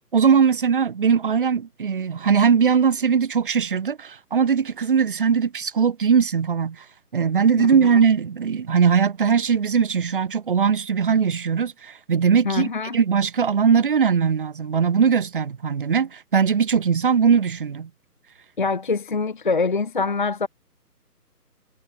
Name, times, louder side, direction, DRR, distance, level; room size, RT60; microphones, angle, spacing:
voice 1, 0.1-6.8 7.1-17.9, right 6 dB, 35° right, 1.0 m, -20 dB
voice 2, 7.6-8.0 12.4-13.0 18.6-20.5, left 4 dB, 30° left, 0.7 m, -24 dB
figure-of-eight pair, 160°, 48 cm